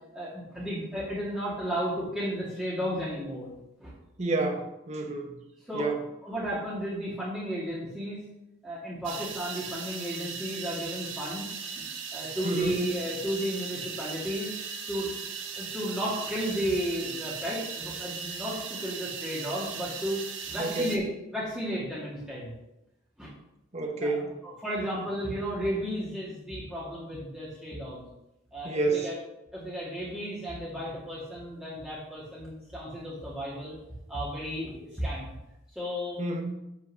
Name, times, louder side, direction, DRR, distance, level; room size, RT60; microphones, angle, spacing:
voice 1, 0.1-3.5 3.8-3.9 5.7-8.2 8.6-11.5 11.8-11.9 12.1-14.5 14.9-15.1 15.6-20.2 20.5-22.5 23.2-23.3 24.0-28.0 28.5-29.1 29.5-33.8 34.1-35.2 35.8-36.3, equal, 5° right, -8 dB, 2.1 m, -33 dB
voice 2, 4.2-5.4 5.7-6.0 12.4-12.9 20.6-20.9 23.7-24.3 28.6-29.1 36.2-36.4, right 2 dB, 35° right, 3 dB, 1.1 m, -29 dB
sound 1, 9.0-21.0, right 6 dB, 80° right, 1.4 m, -38 dB
8.4 x 4.5 x 6.3 m, 0.90 s
head